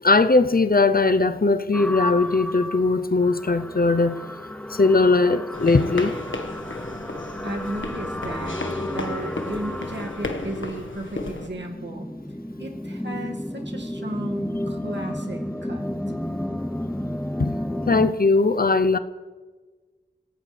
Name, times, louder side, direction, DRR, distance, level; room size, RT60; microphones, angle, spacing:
voice 1, 0.0-4.2 4.7-6.1 17.4-17.5 17.9-19.0, left 3 dB, 50° left, 12 dB, 0.7 m, -19 dB
sound 1, 1.7-18.1, left 1 dB, 5° left, 0.7 m, -32 dB
sound 2, 5.5-11.5, left 2 dB, 85° left, 1.5 m, -33 dB
voice 2, 7.4-8.6 8.9-12.1 12.6-15.8, right 1 dB, 65° right, 1 dB, 2.1 m, -34 dB
26.0 x 16.5 x 3.4 m, 1.4 s
wide cardioid pair, 45°, 19 cm